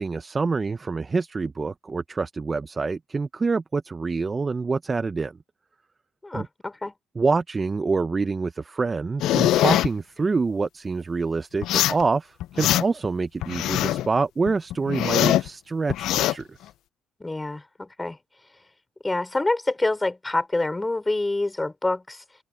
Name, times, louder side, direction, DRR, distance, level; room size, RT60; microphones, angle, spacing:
voice 1, 0.0-5.4 6.3-6.5 7.1-16.6, right 4 dB, 30° right, 0.9 m, -26 dB
voice 2, 6.2-6.9 17.2-18.2 19.0-22.2, left 2 dB, 20° left, 4.9 m, -26 dB
sound 1, 9.2-9.9 11.6-12.0 12.4-13.1 13.4-14.1 14.5-15.5 15.9-16.3, left 13 dB, 80° left, 0.5 m, -22 dB
supercardioid pair, 70°, 0 cm